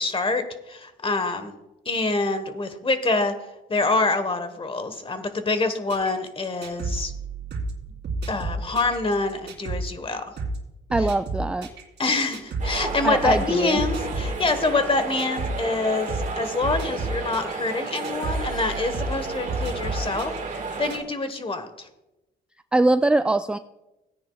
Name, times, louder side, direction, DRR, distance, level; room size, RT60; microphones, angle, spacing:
voice 1, 0.0-1.5 1.8-3.3 3.7-7.1 8.3-10.3 12.0-20.3 20.8-21.9, left 3 dB, 25° left, 9 dB, 1.3 m, -26 dB
sound 1, 5.9-9.9 10.4-10.6 10.9-15.6 16.1-16.3 16.6-21.0, right 2 dB, 60° right, 2.5 m, -32 dB
voice 2, 10.9-11.7 13.0-13.8 22.7-23.6, right 2 dB, 5° right, 10 dB, 0.3 m, -22 dB
sound 2, 12.6-21.0, right 4 dB, 40° right, 1.7 m, -33 dB
17.0 x 9.5 x 2.3 m, 0.96 s
cardioid pair, 90°, 20 cm